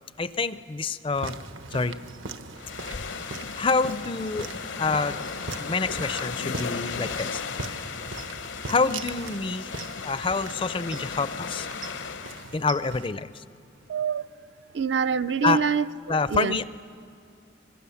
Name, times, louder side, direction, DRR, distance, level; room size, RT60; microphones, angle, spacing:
voice 1, 0.2-1.4 1.7-2.0 3.6-4.5 4.8-5.2 5.6-7.4 8.7-11.7 12.5-13.4 15.4-15.6 16.1-16.6, left 4 dB, 25° left, 14 dB, 0.4 m, -27 dB
sound 1, 1.1-13.1, right 3 dB, 75° right, 1.2 m, -40 dB
sound 2, 2.6-12.5, left 5 dB, 70° left, 0.8 m, -36 dB
voice 2, 13.9-14.2 14.7-16.6, right 6 dB, 60° right, 13 dB, 0.4 m, -26 dB
25.0 x 21.5 x 7.1 m, 2.7 s
head